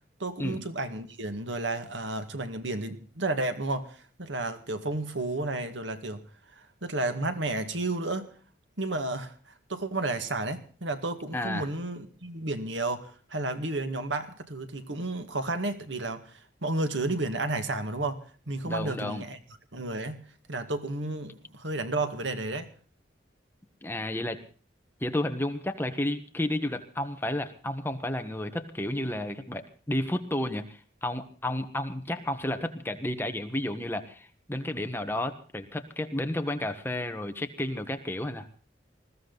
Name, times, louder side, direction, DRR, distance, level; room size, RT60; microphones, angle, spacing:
voice 1, 0.2-6.2 6.6-8.3 8.8-9.3 9.7-18.2 18.5-19.4 19.7-20.2 20.5-22.7, right 2 dB, 90° right, 2.0 m, -32 dB
voice 2, 11.3-11.7 18.7-19.2 23.8-24.4 25.0-38.5, left 1 dB, 10° left, 1.4 m, -32 dB
20.5 x 15.0 x 4.1 m
head